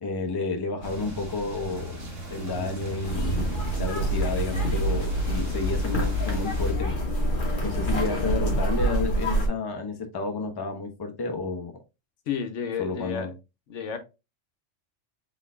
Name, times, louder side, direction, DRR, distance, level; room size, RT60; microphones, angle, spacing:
voice 1, 0.0-2.0 2.3-7.0 7.6-11.7 12.8-13.3, left 3 dB, 25° left, 0.6 m, -31 dB
sound 1, 0.8-6.7, right 1 dB, 85° right, 1.5 m, -36 dB
sound 2, 3.0-9.5, right 1 dB, 45° left, 1.4 m, -26 dB
voice 2, 12.3-13.3 13.7-14.0, left 7 dB, 75° left, 1.1 m, -31 dB
4.0 x 3.8 x 2.4 m
omnidirectional pair, 1.3 m